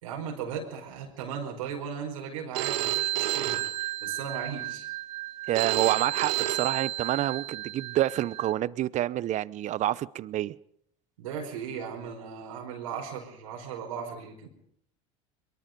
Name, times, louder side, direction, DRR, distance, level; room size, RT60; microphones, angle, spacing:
voice 1, 0.0-4.9 11.2-14.5, right 7 dB, 85° right, 5.0 m, -37 dB
Telephone, 2.5-8.5, right 15 dB, 70° right, 1.5 m, -31 dB
voice 2, 5.5-10.5, right 13 dB, 45° right, 0.7 m, -28 dB
23.0 x 22.5 x 5.3 m
supercardioid pair, 95°, 17 cm